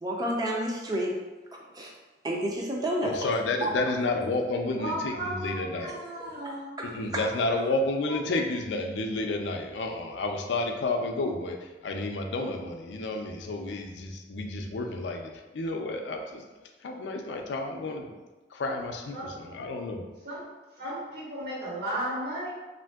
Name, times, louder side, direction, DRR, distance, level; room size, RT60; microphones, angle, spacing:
voice 1, 0.0-1.1 1.7-1.9 2.2-3.3 3.6-3.7 6.4-6.9, right 1 dB, 20° right, -2 dB, 0.4 m, -30 dB
voice 2, 3.0-5.9 6.9-11.6 11.8-16.4 16.8-18.1 18.5-20.1, left 2 dB, 85° left, 3 dB, 0.4 m, -31 dB
voice 3, 4.6-7.2 7.5-7.7 8.1-8.4 19.1-19.3 20.2-20.5 20.8-22.5, right 1 dB, 65° right, -7 dB, 1.3 m, -35 dB
3.5 x 2.5 x 2.3 m, 1.2 s
head